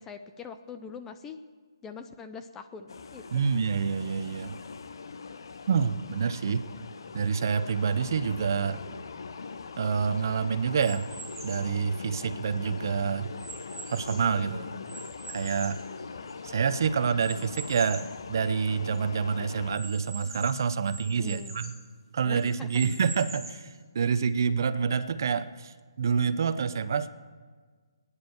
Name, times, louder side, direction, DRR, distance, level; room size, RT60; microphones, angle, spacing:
voice 1, 0.0-1.4 1.8-3.2 14.7-14.8 21.2-21.6 22.2-22.9, left 6 dB, 10° left, 8 dB, 0.5 m, -43 dB
sound 1, 2.9-19.8, left 5 dB, 65° left, 0.9 m, -41 dB
voice 2, 3.3-4.6 5.7-6.7 7.1-8.8 9.8-11.1 11.4-13.3 13.9-14.7 15.3-15.8 16.4-21.7 22.1-27.1, right 6 dB, 50° right, 12 dB, 0.8 m, -27 dB
sound 2, 10.8-11.7 12.4-14.4 14.9-16.5 17.2-18.2 18.6-18.7 18.9-19.0 19.7-21.8 22.4-23.7, right 3 dB, 10° right, 4.4 m, -44 dB
20.0 x 9.9 x 7.1 m, 1.5 s
hypercardioid pair, 165°, 2 cm